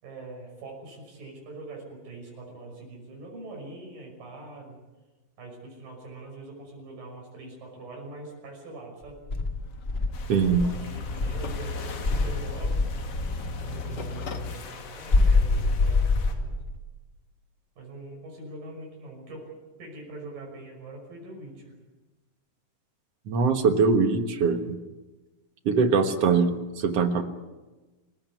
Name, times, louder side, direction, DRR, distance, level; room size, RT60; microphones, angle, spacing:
voice 1, 0.0-4.8 5.4-9.2 10.3-12.9 13.6-16.5 17.8-19.5 19.8-21.7, right 2 dB, 90° right, -1 dB, 7.7 m, -43 dB
Insect, 9.3-11.6 12.0-13.5 15.1-16.8, left 3 dB, 20° left, 1.9 m, -24 dB
sound 1, 9.4-14.5, left 3 dB, 65° left, 1.0 m, -37 dB
sound 2, 10.1-16.4, left 5 dB, 85° left, 4.2 m, -45 dB
voice 2, 10.3-10.6 23.3-24.8 25.7-27.2, right 5 dB, 55° right, 7 dB, 2.1 m, -22 dB
28.5 x 15.0 x 9.5 m, 1.2 s
omnidirectional pair, 3.9 m